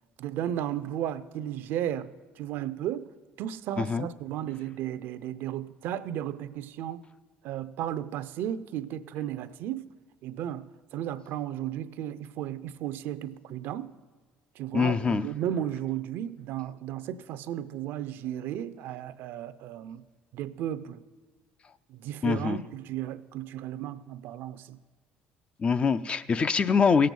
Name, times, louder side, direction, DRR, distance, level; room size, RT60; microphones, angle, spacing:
voice 1, 0.2-2.1 2.4-3.1 3.4-7.0 7.4-9.9 10.2-13.9 14.6-20.0 20.3-21.0 21.9-24.8, right 11 dB, 70° right, 0.5 m, -34 dB
voice 2, 3.8-4.1 14.7-15.3 22.2-22.6 25.6-27.1, left 5 dB, 30° left, 0.4 m, -24 dB
17.0 x 7.6 x 5.3 m
cardioid pair, 105°, 4 cm